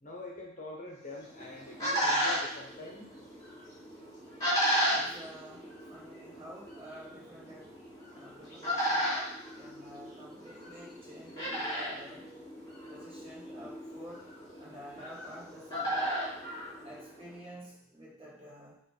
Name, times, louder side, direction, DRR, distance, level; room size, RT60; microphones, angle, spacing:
voice 1, 0.0-3.1, left 2 dB, 35° left, 0 dB, 1.1 m, -44 dB
sound 1, 1.1-17.4, equal, 15° left, 3.2 m, -35 dB
voice 2, 4.9-7.8 8.1-9.2 9.5-12.3 12.9-14.3 14.6-16.2 16.8-18.8, equal, 25° right, -6 dB, 2.2 m, -50 dB
9.3 x 3.2 x 4.9 m, 0.72 s
head